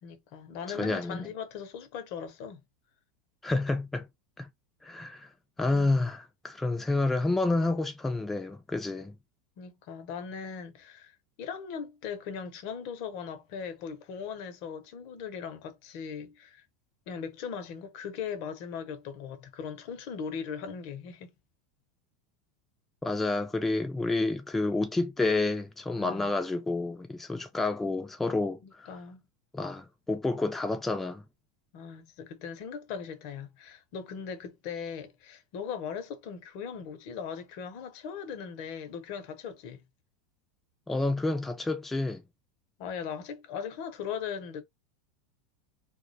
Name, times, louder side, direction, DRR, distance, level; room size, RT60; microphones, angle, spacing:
voice 1, 0.0-2.6 5.7-6.0 9.6-11.1 11.4-16.6 17.1-21.3 26.0-26.3 28.6-29.2 31.7-39.8 42.8-44.6, left 7 dB, 60° left, 0.6 m, -39 dB
voice 2, 0.7-1.3 3.4-4.1 4.4-4.5 4.8-5.3 5.6-9.1 23.0-28.9 29.5-31.2 40.9-42.2, left 2 dB, 10° left, 0.3 m, -29 dB
2.3 x 2.1 x 2.6 m
supercardioid pair, 120°, 3 cm